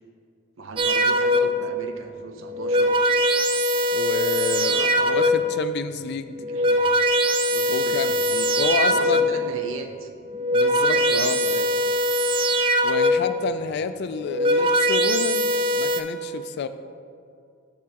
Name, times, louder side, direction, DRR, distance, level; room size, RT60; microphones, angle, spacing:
voice 1, 0.6-3.0 4.5-5.5 6.4-7.0 7.5-8.5 8.9-10.1 10.7-11.7 14.4-14.6, right 2 dB, 70° right, 5 dB, 0.6 m, -38 dB
sound 1, 0.8-1.7 2.4-5.6 6.3-9.5 10.2-13.4 14.2-16.0, equal, 25° right, 0.3 m, -21 dB
voice 2, 3.9-6.4 7.7-8.2 8.6-9.3 10.5-11.4 12.8-16.7, left 5 dB, 55° left, 11 dB, 0.3 m, -29 dB
8.3 x 6.8 x 2.9 m, 2.3 s
head